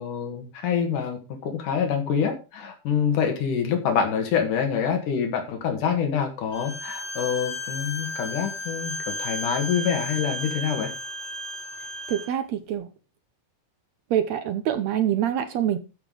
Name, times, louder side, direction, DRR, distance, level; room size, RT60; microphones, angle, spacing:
voice 1, 0.0-10.9, left 7 dB, 80° left, 3.3 m, -26 dB
Bowed string instrument, 6.5-12.3, left 1 dB, 40° left, 3.2 m, -34 dB
voice 2, 12.1-12.9 14.1-15.8, right 10 dB, 70° right, 1.8 m, -25 dB
13.0 x 5.8 x 4.8 m
omnidirectional pair, 3.6 m